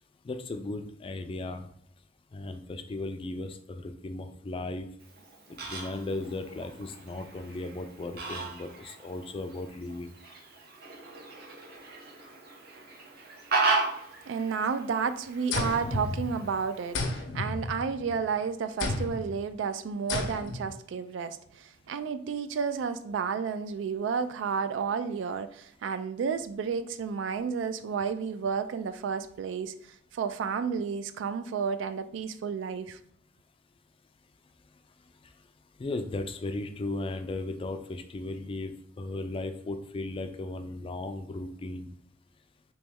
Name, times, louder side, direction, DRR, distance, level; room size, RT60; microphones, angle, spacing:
voice 1, 0.2-1.7 2.3-4.9 5.7-10.1 35.8-41.9, left 2 dB, 30° left, 0.3 m, -36 dB
Fowl, 5.0-17.0, right 3 dB, 55° right, 0.8 m, -36 dB
voice 2, 14.3-29.7 30.1-33.0, right 6 dB, 75° right, 0.3 m, -31 dB
sound 1, 15.5-16.6 16.9-18.2 18.8-19.3 20.1-20.7, left 3 dB, 75° left, 0.6 m, -32 dB
3.1 x 3.0 x 3.5 m
head